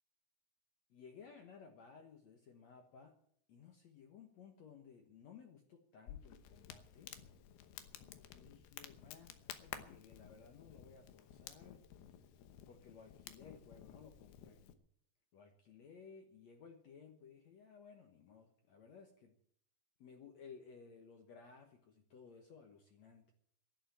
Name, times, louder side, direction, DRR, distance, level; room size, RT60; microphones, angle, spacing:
voice 1, 0.9-3.2 3.5-7.2 8.3-11.8 12.7-14.6 15.3-19.4 20.0-23.3, left 6 dB, 60° left, 3 dB, 2.1 m, -58 dB
Crackle, 6.1-14.7, left 10 dB, 90° left, 3.1 m, -53 dB
11.5 x 11.0 x 8.6 m, 0.65 s
omnidirectional pair, 4.4 m